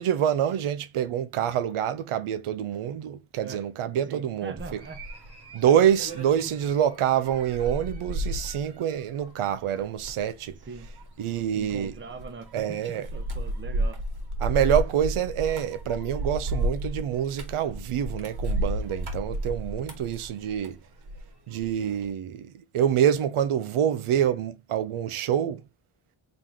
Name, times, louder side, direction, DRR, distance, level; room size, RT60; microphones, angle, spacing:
voice 1, 0.0-4.8 5.5-10.6 11.2-11.9 12.5-13.1 14.4-20.8 21.5-25.6, right 9 dB, 85° right, 0.7 m, -26 dB
voice 2, 4.1-5.0 10.7-10.9 11.5-14.0, right 4 dB, 25° right, 0.7 m, -41 dB
sound 1, 4.6-21.3 21.6-22.1, right 1 dB, 55° right, 1.7 m, -33 dB
3.9 x 3.8 x 3.0 m
wide cardioid pair, 140°, 49 cm